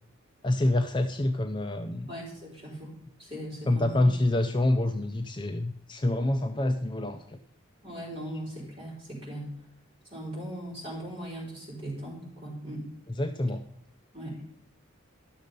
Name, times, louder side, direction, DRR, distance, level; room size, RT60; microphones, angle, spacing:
voice 1, 0.4-2.1 3.7-7.2 13.2-13.6, left 1 dB, 20° left, 6 dB, 0.4 m, -26 dB
voice 2, 2.1-2.9 3.2-4.1 7.8-9.5 10.1-12.9 14.1-14.4, right 1 dB, 25° right, -4 dB, 4.0 m, -39 dB
12.0 x 6.4 x 5.4 m, 0.72 s
head